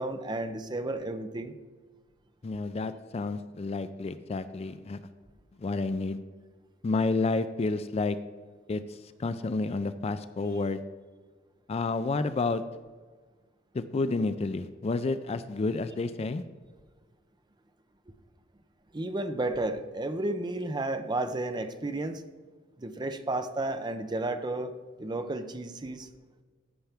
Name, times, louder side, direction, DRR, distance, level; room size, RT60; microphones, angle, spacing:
voice 1, 0.0-1.5 18.9-22.2 22.8-24.7 25.0-26.1, right 2 dB, 20° right, 9 dB, 0.5 m, -32 dB
voice 2, 2.4-5.0 5.6-6.2 6.8-8.2 8.7-10.8 11.7-12.6 13.7-16.4, left 3 dB, 30° left, 12 dB, 0.3 m, -30 dB
15.0 x 5.7 x 3.5 m, 1.4 s
head